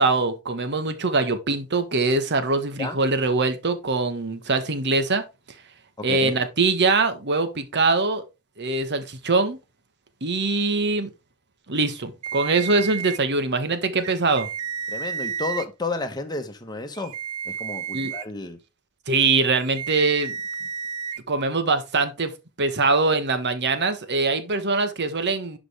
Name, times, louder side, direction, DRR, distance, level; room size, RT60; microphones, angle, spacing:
voice 1, 0.0-5.2 6.0-8.2 8.6-9.6 10.2-11.1 11.7-14.5 17.9-18.1 19.1-20.4 21.3-22.3 22.6-25.6, right 3 dB, 50° right, 1.4 m, -23 dB
voice 2, 6.0-6.4 14.9-17.1 17.4-18.6, left 3 dB, 20° left, 1.3 m, -31 dB
sound 1, 12.2-13.2 14.0-15.6 16.9-18.2 19.6-21.2, right 7 dB, 85° right, 0.6 m, -32 dB
11.0 x 5.2 x 3.5 m
head